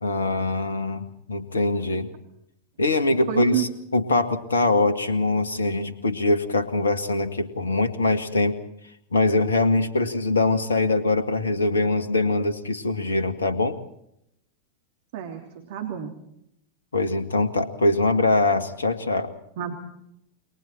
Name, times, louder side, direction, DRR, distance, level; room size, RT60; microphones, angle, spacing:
voice 1, 0.0-2.1 2.8-8.6 9.1-13.8 16.9-19.3, left 2 dB, 70° left, 11 dB, 2.1 m, -23 dB
voice 2, 3.3-3.7 15.1-16.1 19.6-19.7, right 10 dB, 50° right, 4 dB, 3.0 m, -29 dB
29.0 x 23.0 x 4.5 m, 0.76 s
figure-of-eight pair, 90°, 0 cm